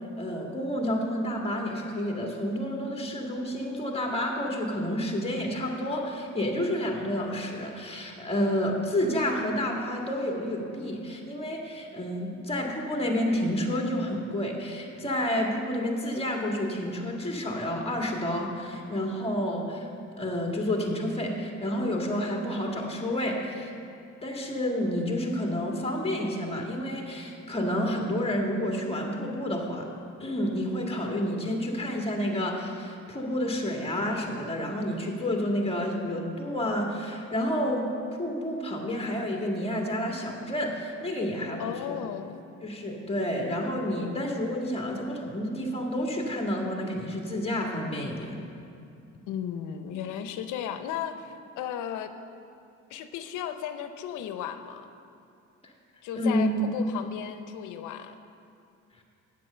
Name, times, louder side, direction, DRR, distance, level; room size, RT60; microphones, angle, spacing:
voice 1, 0.2-19.9 20.2-23.7 24.2-29.9 30.2-37.9 38.2-41.7 42.6-48.4 55.6-55.7 56.2-56.7, equal, 20° left, 0 dB, 1.8 m, -29 dB
voice 2, 41.6-42.4 49.3-52.1 52.9-54.9 56.0-58.2, left 9 dB, 90° left, 9 dB, 0.7 m, -35 dB
8.5 x 7.7 x 6.7 m, 2.6 s
cardioid pair, 90°, 30 cm